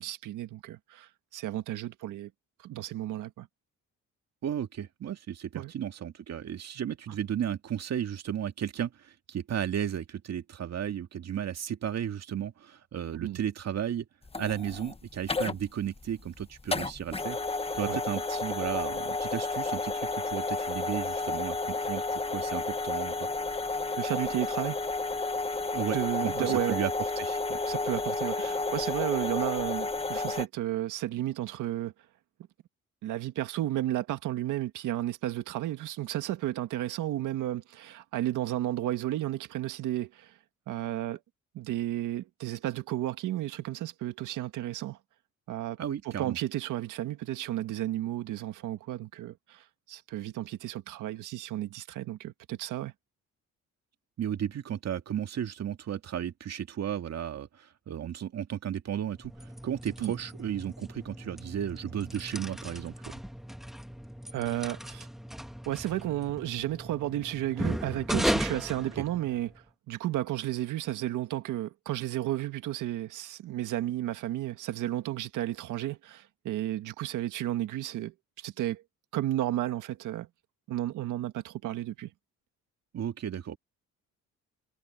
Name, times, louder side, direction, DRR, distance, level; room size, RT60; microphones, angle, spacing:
voice 1, 0.0-2.3 2.6-3.5 5.5-5.7 13.1-13.4 17.9-18.0 24.0-24.8 25.9-26.8 27.7-31.9 33.0-40.3 40.7-41.2 41.5-45.0 45.5-45.8 46.0-52.9 60.0-60.1 64.3-65.1 65.7-78.8 79.1-80.3 80.7-82.1, right 13 dB, 85° right, 1.7 m, -33 dB
voice 2, 4.4-14.1 14.4-17.4 17.7-23.3 25.7-26.9 27.2-27.6 45.8-46.4 54.2-63.2 69.0-69.1 82.9-83.6, right 9 dB, 60° right, 2.2 m, -34 dB
sound 1, 14.2-30.5, left 3 dB, 20° left, 1.4 m, -32 dB
sound 2, 59.1-69.6, equal, ahead, 1.7 m, -36 dB
cardioid pair, 90°, 30 cm